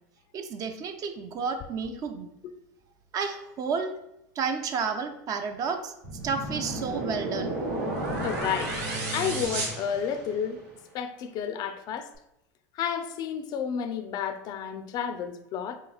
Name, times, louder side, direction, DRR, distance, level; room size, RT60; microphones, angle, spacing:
voice 1, 0.3-2.3 3.1-3.9 4.4-5.9 6.2-7.6, right 5 dB, 40° right, 0.4 m, -31 dB
sound 1, 6.0-10.6, right 2 dB, 75° right, 1.0 m, -32 dB
voice 2, 8.2-8.7 9.1-10.6 10.9-12.1 12.7-15.8, left 8 dB, 45° left, 0.3 m, -31 dB
3.3 x 2.9 x 2.3 m
hypercardioid pair, 100°, 9 cm